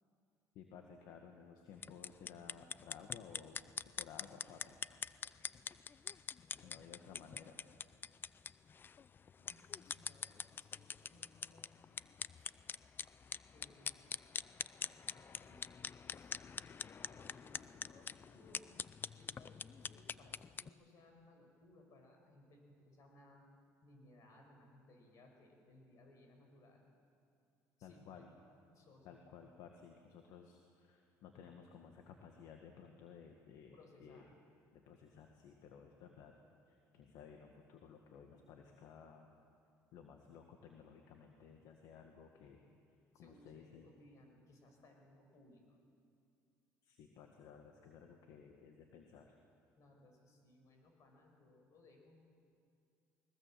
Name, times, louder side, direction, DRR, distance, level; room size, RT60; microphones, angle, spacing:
voice 1, 0.6-3.6 3.9-4.8 6.6-7.6 27.8-28.3 29.0-34.2 34.7-36.4 36.7-39.3 39.9-42.7 43.2-43.9 46.8-49.4, left 7 dB, 75° left, 3 dB, 1.8 m, -56 dB
sound 1, 1.7-20.7, left 6 dB, 35° left, 0.4 m, -45 dB
voice 2, 9.4-11.7 12.4-12.6 13.5-14.0 14.8-16.4 16.6-18.7 19.1-23.5 23.8-26.9 27.8-28.3 28.7-29.2 33.7-34.3 43.1-45.8 49.8-52.2, left 1 dB, 55° left, 3 dB, 5.8 m, -64 dB
20.5 x 20.5 x 7.6 m, 2.4 s
supercardioid pair, 95°, 6 cm